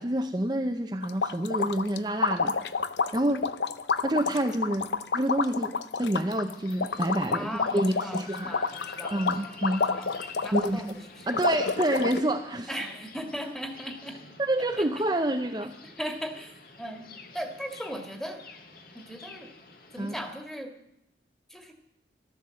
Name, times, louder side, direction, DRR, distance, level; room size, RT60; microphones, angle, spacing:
voice 1, 0.0-2.5 3.1-3.5 4.0-5.7 6.0-8.5 9.1-9.8 10.5-12.7 14.4-15.7 20.0-20.2, right 1 dB, 25° right, 4 dB, 0.7 m, -28 dB
sound 1, 1.0-10.9 11.3-12.2, left 5 dB, 75° left, 0.7 m, -29 dB
sound 2, 6.3-20.3, left 4 dB, 55° left, 1.9 m, -47 dB
voice 2, 7.3-9.5 9.9-10.1 10.4-10.9 11.2-11.4 12.7-14.2 14.8-14.9 16.0-17.0 17.3-18.4 18.9-19.5 19.9-20.7 21.5-21.7, equal, 5° left, 4 dB, 1.8 m, -38 dB
14.0 x 12.5 x 7.7 m, 0.82 s
head